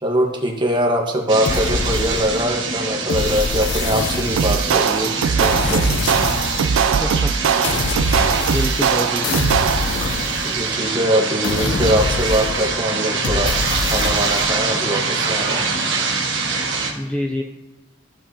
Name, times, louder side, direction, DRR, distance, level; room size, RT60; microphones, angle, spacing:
voice 1, 0.0-5.9 10.4-13.5 13.9-15.6, right 1 dB, 25° right, 1 dB, 1.1 m, -22 dB
sound 1, 1.3-16.9, right 4 dB, 70° right, 1.3 m, -24 dB
sound 2, 1.4-2.6 3.1-4.7 5.4-6.7 7.6-8.9 9.2-10.8 11.4-12.8 13.2-14.5, left 4 dB, 60° left, 0.5 m, -25 dB
sound 3, 4.4-10.1, right 6 dB, 90° right, 0.4 m, -20 dB
voice 2, 6.9-7.3 8.5-9.5 17.0-17.4, left 1 dB, 5° left, 2 dB, 0.3 m, -26 dB
14.0 x 5.4 x 2.8 m, 1.1 s
head